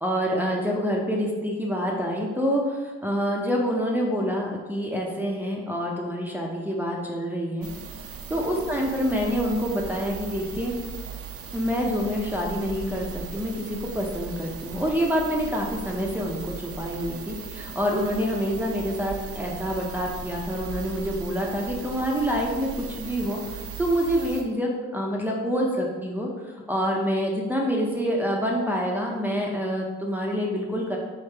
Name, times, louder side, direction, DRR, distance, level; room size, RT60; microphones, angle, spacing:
voice 1, 0.0-7.7 8.3-10.7 11.5-31.0, equal, 5° right, -2 dB, 0.6 m, -27 dB
sound 1, 7.6-24.4, right 6 dB, 50° right, 0.5 m, -38 dB
3.3 x 3.1 x 4.5 m, 1.3 s
cardioid pair, 90°, 30 cm